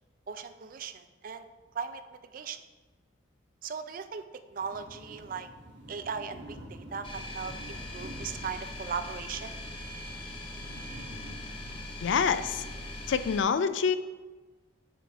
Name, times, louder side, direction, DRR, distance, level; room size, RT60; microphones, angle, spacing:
voice 1, 0.3-1.5 1.7-2.6 3.6-4.2 4.5-5.5 5.9-9.5, right 6 dB, 50° right, 10 dB, 0.4 m, -38 dB
sound 1, 4.6-13.3, equal, 65° right, 1.1 m, -49 dB
sound 2, 7.0-13.4, left 1 dB, 30° left, 0.8 m, -41 dB
voice 2, 12.0-12.6 13.1-14.0, left 6 dB, 80° left, 13 dB, 0.4 m, -26 dB
7.5 x 4.8 x 3.4 m, 1.3 s
head